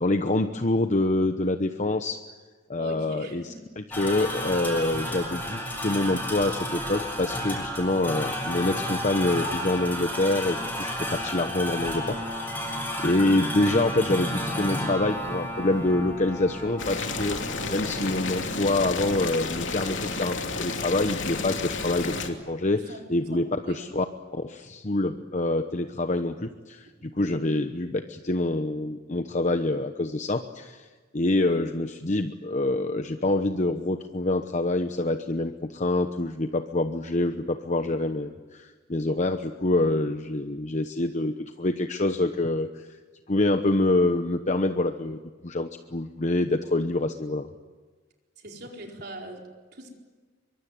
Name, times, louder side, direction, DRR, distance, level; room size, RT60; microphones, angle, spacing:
voice 1, 0.0-2.2 2.7-17.4 17.7-24.1 24.3-30.9 31.1-43.0 43.3-45.2 45.4-47.5, left 2 dB, 40° left, 7 dB, 1.0 m, -26 dB
voice 2, 2.8-3.6 17.9-18.1 22.7-23.0 23.3-23.8 48.4-49.9, right 1 dB, 60° right, 1 dB, 4.5 m, -42 dB
sound 1, 3.9-21.5, equal, 10° left, 7.1 m, -33 dB
Boiling, 16.8-22.3, left 4 dB, 75° left, 2.9 m, -31 dB
24.0 x 23.5 x 9.5 m, 1.3 s
head